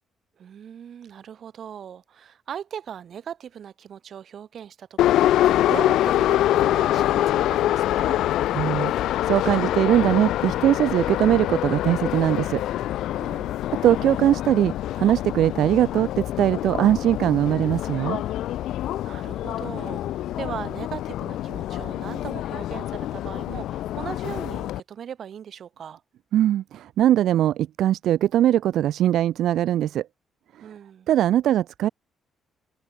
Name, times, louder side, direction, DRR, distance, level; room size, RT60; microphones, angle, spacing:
voice 1, 0.4-8.2 13.2-13.6 19.0-26.0 30.6-31.1, right 8 dB, 60° right, 6.9 m, -39 dB
Subway metro underground, 5.0-24.8, left 13 dB, 80° left, 0.6 m, -25 dB
voice 2, 8.5-12.6 13.1-13.4 13.8-18.2 26.3-30.1 30.6-30.7 31.1-31.9, right 12 dB, 75° right, 2.1 m, -21 dB
open air
cardioid pair, 90°, 0 cm